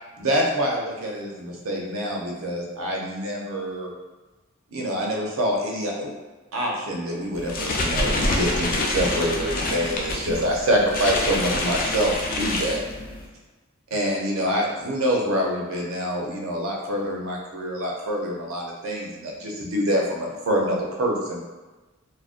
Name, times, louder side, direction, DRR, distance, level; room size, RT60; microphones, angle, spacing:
voice 1, 0.2-3.9 4.7-6.1 6.5-12.8 13.9-21.4, equal, 90° right, -1 dB, 0.6 m, -26 dB
sound 1, 7.3-13.3, left 2 dB, 45° left, 0.3 m, -27 dB
2.4 x 2.0 x 2.4 m, 1.2 s
head